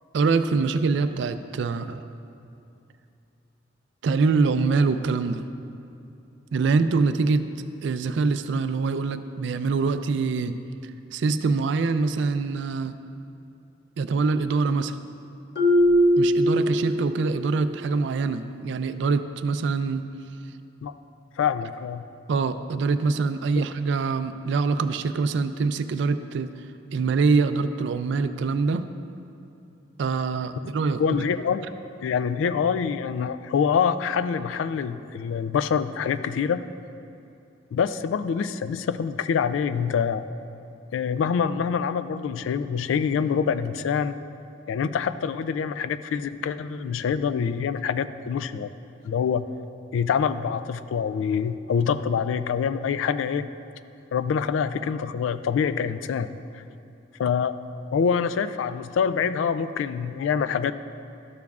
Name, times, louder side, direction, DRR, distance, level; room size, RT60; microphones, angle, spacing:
voice 1, 0.1-2.0 4.0-5.4 6.5-7.4 7.8-10.6 11.1-12.9 14.0-14.9 16.2-20.0 22.3-26.5 26.9-28.8 30.0-31.0, right 4 dB, 65° right, 11 dB, 0.3 m, -24 dB
Marimba xylophone, 15.5-17.3, equal, 60° left, 1.4 m, -20 dB
voice 2, 21.4-22.0 23.6-23.7 31.0-31.7 32.0-36.6 37.7-40.2 40.9-44.2 44.7-48.7 49.0-49.4 49.9-53.5 54.1-56.6 57.2-57.5 57.9-60.7, left 6 dB, 85° left, 13 dB, 0.3 m, -25 dB
12.5 x 7.0 x 2.4 m, 2.7 s
head